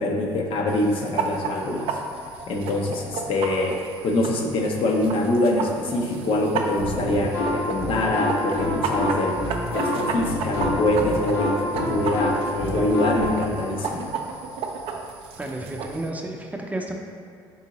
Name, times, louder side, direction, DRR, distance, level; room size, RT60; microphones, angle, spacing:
voice 1, 0.0-2.0 2.5-9.4 9.7-14.1, left 1 dB, 60° left, 1 dB, 0.6 m, -24 dB
sound 1, 0.7-16.1, right 5 dB, 70° right, 0.4 m, -33 dB
sound 2, 6.8-13.3, left 1 dB, 90° left, 1.0 m, -27 dB
voice 2, 15.4-16.9, right 1 dB, 15° right, 1 dB, 0.5 m, -31 dB
4.0 x 3.6 x 2.9 m, 2.3 s
supercardioid pair, 70°, 10 cm